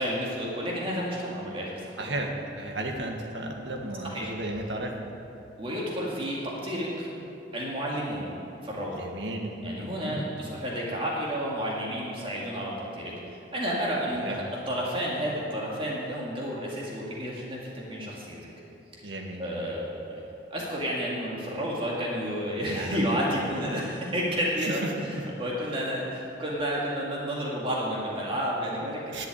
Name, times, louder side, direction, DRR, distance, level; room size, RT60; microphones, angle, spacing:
voice 1, 0.0-2.1 4.0-4.3 5.6-7.1 7.5-8.3 8.6-9.0 9.6-18.4 18.9-19.0 19.4-20.2 20.5-29.2, equal, 30° right, -4 dB, 2.0 m, -31 dB
voice 2, 2.0-4.9 9.0-10.3 14.2-14.4 19.0-19.4 22.7-23.1 24.6-24.9 29.1-29.3, right 1 dB, 85° right, 1 dB, 1.5 m, -34 dB
11.5 x 7.8 x 8.9 m, 2.7 s
head